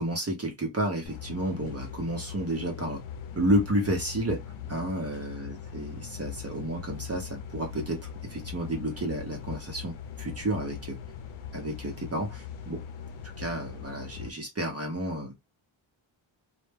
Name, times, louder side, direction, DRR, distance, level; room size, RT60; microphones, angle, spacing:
voice 1, 0.0-3.0 3.3-4.4 4.7-9.9 10.2-11.0 11.5-12.8 13.4-15.4, right 1 dB, 30° right, 0.7 m, -31 dB
sound 1, 1.1-14.3, left 8 dB, 80° left, 0.5 m, -40 dB
2.1 x 2.1 x 3.3 m
wide cardioid pair, 110°, 49 cm